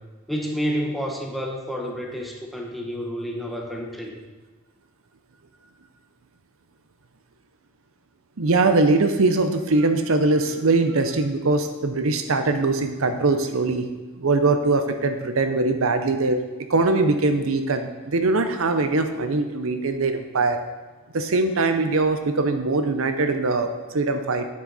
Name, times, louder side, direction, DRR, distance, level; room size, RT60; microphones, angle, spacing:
voice 1, 0.3-4.2, equal, ahead, 0 dB, 1.1 m, -29 dB
voice 2, 8.4-13.9 14.2-16.4 16.7-20.6 21.1-24.5, right 3 dB, 65° right, 8 dB, 0.7 m, -22 dB
9.3 x 7.6 x 4.1 m, 1.3 s
head